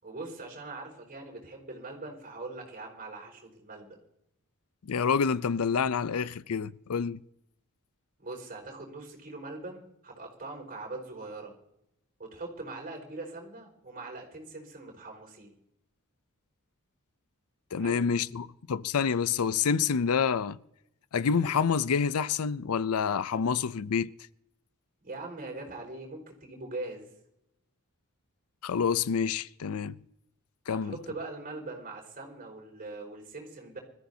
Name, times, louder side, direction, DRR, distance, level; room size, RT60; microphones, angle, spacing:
voice 1, 0.0-4.0 8.2-11.5 12.2-15.5 17.8-18.1 25.0-27.1 30.7-33.8, right 2 dB, 40° right, 5.1 m, -42 dB
voice 2, 4.8-7.2 17.7-20.6 21.1-24.1 28.6-29.9 30.7-31.0, left 6 dB, 90° left, 0.5 m, -28 dB
25.5 x 14.0 x 2.8 m
head